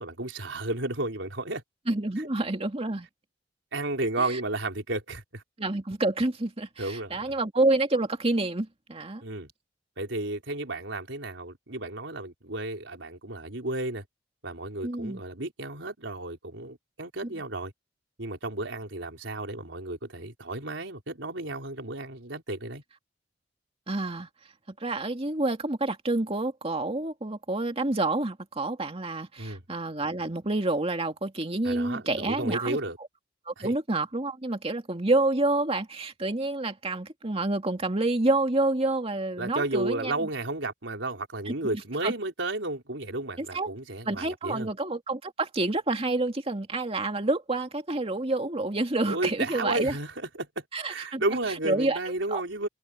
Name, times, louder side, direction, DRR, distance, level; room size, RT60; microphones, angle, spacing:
voice 1, 0.0-1.6 3.7-5.4 6.8-7.4 9.2-9.5 10.0-14.0 14.4-17.7 18.2-22.8 29.4-29.6 31.6-33.0 33.6-33.7 39.4-44.7 49.0-52.7, right 2 dB, 90° right, 4.2 m, -33 dB
voice 2, 1.9-3.1 4.2-4.4 5.6-9.2 14.8-15.2 23.9-24.3 24.8-32.8 33.5-40.1 41.5-41.6 42.0-42.1 43.4-43.7 44.1-50.0 50.7-51.2 51.6-52.0 52.3-52.4, right 2 dB, 30° right, 2.2 m, -28 dB
head